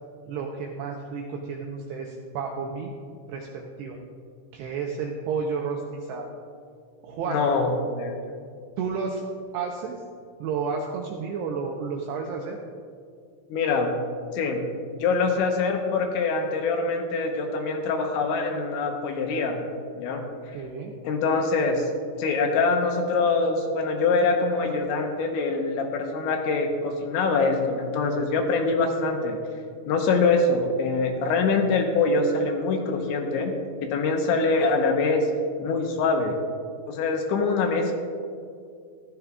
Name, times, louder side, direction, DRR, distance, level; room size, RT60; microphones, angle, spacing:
voice 1, 0.3-2.9 3.3-4.0 4.5-6.3 7.0-7.5 8.8-9.2 9.5-10.0 10.4-12.6 20.5-20.9, right 5 dB, 85° right, 1 dB, 2.4 m, -31 dB
voice 2, 7.3-8.3 13.5-13.9 14.3-14.6 14.9-19.6 20.0-20.2 20.5-20.6 21.0-21.9 22.2-29.4 29.9-33.5 33.8-35.3 35.6-36.4 36.9-37.9, left 3 dB, 75° left, 2 dB, 3.1 m, -24 dB
15.0 x 12.5 x 2.3 m, 2.3 s
omnidirectional pair, 5.7 m